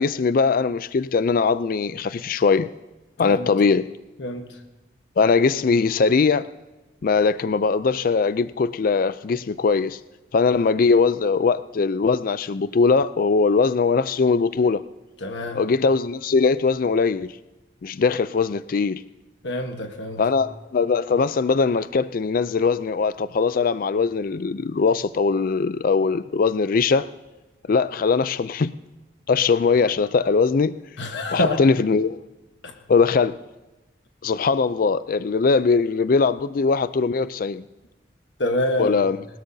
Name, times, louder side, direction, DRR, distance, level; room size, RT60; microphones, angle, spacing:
voice 1, 0.0-2.7 3.2-3.9 5.2-6.5 7.0-10.0 10.3-14.8 15.5-17.3 17.8-19.0 20.2-27.1 27.7-28.7 29.3-30.8 31.3-32.2 32.9-33.4 34.2-37.6 38.8-39.2, left 4 dB, 50° left, 0.4 m, -21 dB
voice 2, 4.2-4.6 15.2-15.6 19.4-20.3 31.0-31.6 32.6-32.7 38.4-39.0, left 1 dB, 70° left, 1.2 m, -26 dB
21.0 x 19.5 x 2.7 m
head